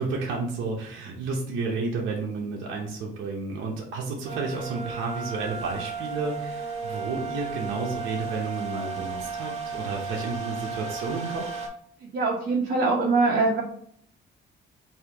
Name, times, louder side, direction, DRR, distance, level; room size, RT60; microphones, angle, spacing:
voice 1, 0.0-11.4, right 4 dB, 85° right, -1 dB, 0.9 m, -31 dB
sound 1, 4.3-11.7, right 5 dB, 30° right, 1.6 m, -34 dB
voice 2, 12.1-13.6, right 3 dB, 60° right, -4 dB, 1.1 m, -23 dB
4.4 x 2.8 x 3.5 m, 0.63 s
cardioid pair, 90°, 20 cm